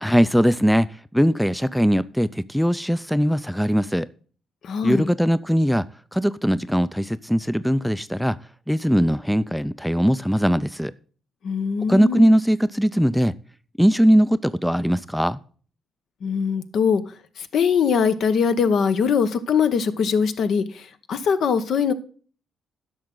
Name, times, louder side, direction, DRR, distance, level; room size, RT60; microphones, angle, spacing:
voice 1, 0.0-0.9 1.1-4.1 4.8-5.9 6.1-8.4 8.7-10.9 11.9-13.3 13.8-15.4, equal, ahead, 0.3 m, -20 dB
voice 2, 4.6-5.1 11.4-12.3 16.2-17.0 17.4-21.9, left 6 dB, 65° left, 0.9 m, -22 dB
10.5 x 6.4 x 3.8 m
cardioid pair, 90°, 0 cm